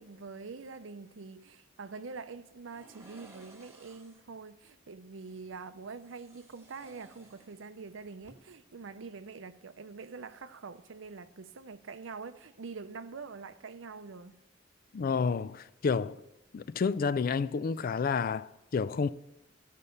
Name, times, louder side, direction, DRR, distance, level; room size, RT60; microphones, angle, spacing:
voice 1, 0.0-14.3, right 4 dB, 85° right, 0.6 m, -45 dB
sound 1, 2.7-4.3 5.9-7.9 8.2-8.3, right 2 dB, 15° right, 1.7 m, -57 dB
voice 2, 14.9-16.2 16.5-19.1, left 5 dB, 50° left, 0.3 m, -30 dB
14.0 x 5.6 x 6.5 m
head